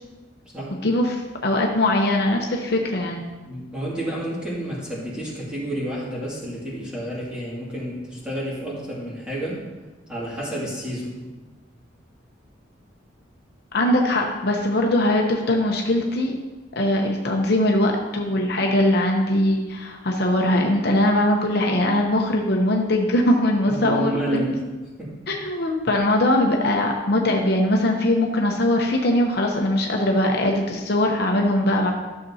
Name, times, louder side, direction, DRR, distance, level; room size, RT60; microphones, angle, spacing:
voice 1, 0.8-3.2 13.7-16.3 16.8-24.5 25.3-31.9, left 1 dB, 55° left, 1 dB, 0.8 m, -21 dB
voice 2, 3.5-9.6 10.1-11.2 23.7-24.6 25.0-25.1, right 1 dB, 5° right, -7 dB, 2.2 m, -30 dB
12.0 x 6.6 x 2.8 m, 1.2 s
head